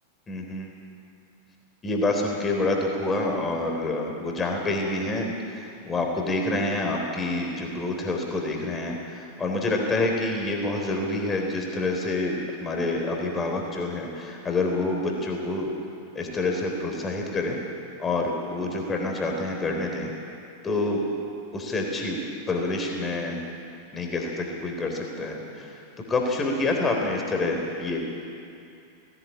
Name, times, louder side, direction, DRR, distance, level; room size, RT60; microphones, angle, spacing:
voice 1, 0.3-0.7 1.8-15.7 16.1-17.6 18.0-20.1 20.6-21.0 21.5-22.2 22.5-23.4 23.9-25.8 26.1-28.0, left 2 dB, 20° left, 1 dB, 3.8 m, -27 dB
19.0 x 17.5 x 8.6 m, 2.5 s
figure-of-eight pair, 90°, 0 cm